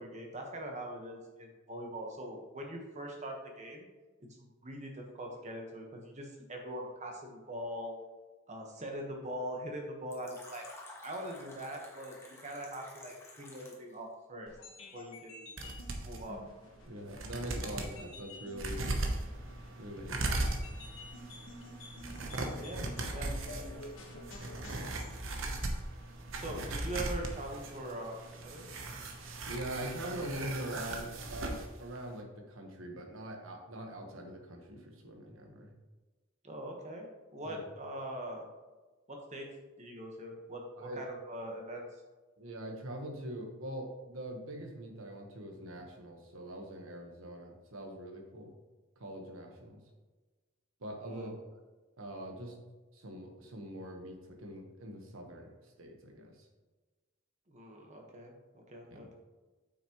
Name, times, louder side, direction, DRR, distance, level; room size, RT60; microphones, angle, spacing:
voice 1, 0.0-3.9 4.2-8.0 8.5-10.7 11.0-14.6 14.9-15.6 16.0-16.4 22.5-22.8 23.1-23.8 26.3-28.7 36.4-37.1 37.3-38.4 39.1-39.5 39.8-41.9 51.0-51.3 57.5-58.3 58.7-59.1, right 1 dB, 35° right, 1 dB, 1.3 m, -42 dB
Fill (with liquid), 10.1-13.9, left 2 dB, 15° left, 1.4 m, -52 dB
sound 1, 14.5-25.1, left 2 dB, 90° left, 1.3 m, -51 dB
sound 2, 15.6-16.2 16.7-16.8 17.1-17.9 18.5-31.7 32.0-32.1, right 2 dB, 70° right, 1.0 m, -38 dB
voice 2, 16.9-18.8 19.8-20.6 29.4-35.7 37.4-37.7 40.8-41.0 42.4-48.5 49.0-49.8 50.8-51.3 52.0-52.5 52.9-56.5 58.9-59.1, right 1 dB, 85° right, 2 dB, 1.3 m, -43 dB
8.3 x 6.0 x 3.1 m, 1.2 s
head